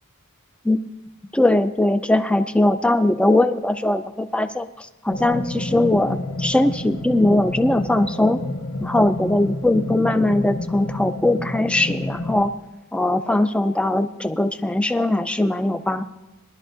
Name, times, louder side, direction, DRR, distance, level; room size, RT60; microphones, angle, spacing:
voice 1, 1.3-8.4 8.8-12.5 12.9-16.0, left 1 dB, 5° left, 9 dB, 0.4 m, -20 dB
sound 1, 5.1-12.5, left 1 dB, 70° left, 1.2 m, -29 dB
21.5 x 11.5 x 2.6 m, 1.1 s
head